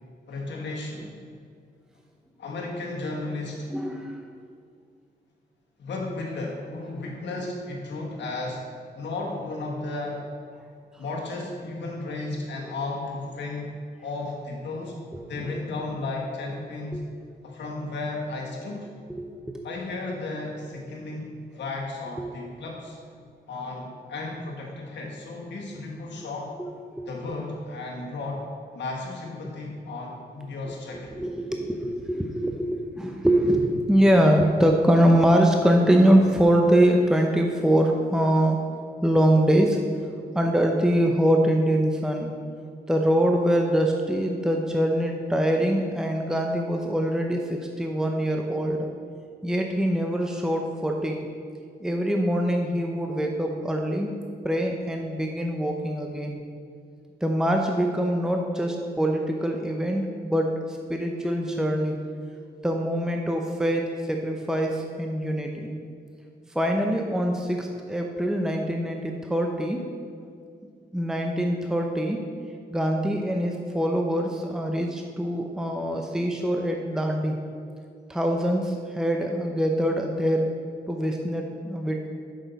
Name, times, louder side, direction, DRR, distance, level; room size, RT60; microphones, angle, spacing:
voice 1, 0.3-1.1 2.4-3.7 5.8-8.6 8.9-10.2 11.0-13.7 14.0-15.0 15.3-17.1 17.4-18.9 19.6-23.0 23.5-26.5 27.1-28.5 28.7-31.1, left 2 dB, 80° left, -1 dB, 1.5 m, -34 dB
voice 2, 3.7-4.1 15.4-15.5 16.9-17.0 19.1-19.6 22.2-22.3 27.0-27.1 30.6-30.8 31.1-38.6 39.0-39.8 40.3-42.3 42.9-48.9 49.4-51.3 51.8-54.2 54.4-56.4 57.2-62.0 62.6-65.7 66.5-69.8 70.9-72.2 72.7-77.4 78.1-80.5 80.9-82.1, equal, 5° right, 2 dB, 0.7 m, -23 dB
7.6 x 6.4 x 4.1 m, 2.3 s
cardioid pair, 55°, 18 cm